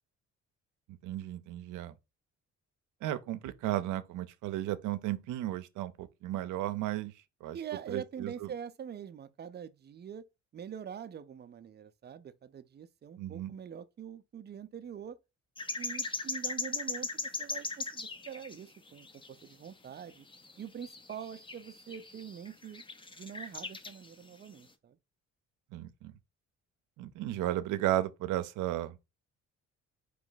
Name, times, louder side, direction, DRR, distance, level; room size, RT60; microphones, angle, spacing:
voice 1, 0.9-1.9 3.0-7.1 7.4-7.6 7.9-8.3 13.2-13.5 25.7-26.1 27.0-29.1, right 14 dB, 85° right, 0.6 m, -34 dB
voice 2, 7.5-10.2 10.5-15.2 15.8-20.3 20.6-22.8 23.2-25.0, right 8 dB, 35° right, 0.5 m, -44 dB
sound 1, 15.6-18.6 18.9-19.7 20.0-24.1 24.5-24.6, left 3 dB, 15° left, 0.6 m, -39 dB
4.2 x 3.0 x 3.9 m
cardioid pair, 90°, 30 cm